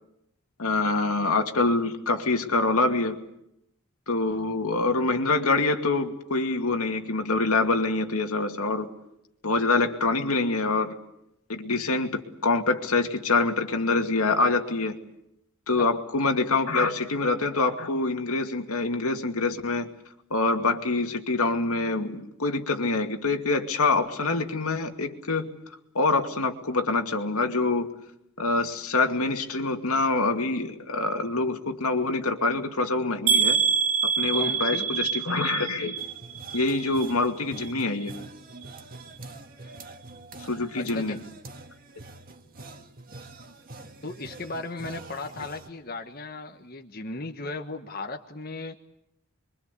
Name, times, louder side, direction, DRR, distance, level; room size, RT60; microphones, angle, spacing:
voice 1, 0.6-3.2 4.1-8.9 9.4-11.0 11.5-14.9 15.7-19.9 20.3-25.5 25.9-27.9 28.4-33.6 34.2-36.0 36.5-38.1 40.5-41.2, left 3 dB, 85° left, 4 dB, 2.4 m, -25 dB
sound 1, 33.3-37.2 37.5-38.2 38.6-38.7 39.1-39.2, right 6 dB, 85° right, 2.6 m, -26 dB
voice 2, 34.3-34.9 39.6-39.7 40.7-41.2 44.0-48.8, left 2 dB, 40° left, 4 dB, 1.4 m, -36 dB
sound 2, 36.0-45.7, right 2 dB, 40° right, 1.9 m, -45 dB
27.0 x 23.5 x 8.4 m, 0.82 s
head